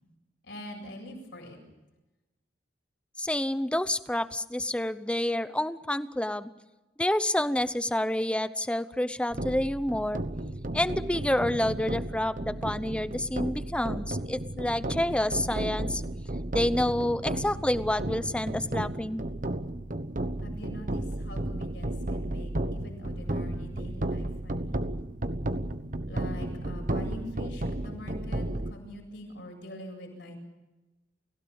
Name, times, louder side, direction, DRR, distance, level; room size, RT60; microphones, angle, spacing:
voice 1, 0.4-1.6 20.4-24.8 25.4-25.5 26.1-30.4, left 1 dB, 70° left, 2 dB, 7.8 m, -44 dB
voice 2, 3.2-6.5 7.0-10.2 10.7-16.0 16.5-19.2, left 1 dB, 5° left, 14 dB, 0.8 m, -28 dB
sound 1, 9.3-28.7, right 1 dB, 45° right, 1.2 m, -33 dB
29.5 x 16.5 x 7.2 m, 1.0 s
head